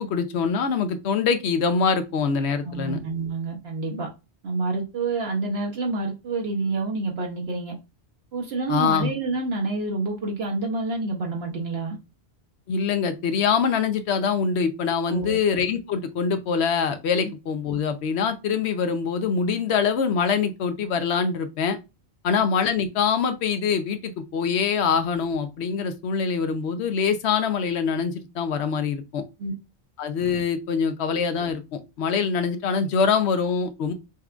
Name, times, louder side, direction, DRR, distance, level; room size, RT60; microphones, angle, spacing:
voice 1, 0.0-3.0 8.7-9.1 12.7-21.8 22.2-29.2 30.0-33.9, left 6 dB, 75° left, 0.9 m, -24 dB
voice 2, 2.6-4.1 4.4-7.7 8.3-12.0 15.0-15.4 29.4-29.5, right 3 dB, 65° right, 1.0 m, -28 dB
5.6 x 2.3 x 2.4 m
omnidirectional pair, 1.1 m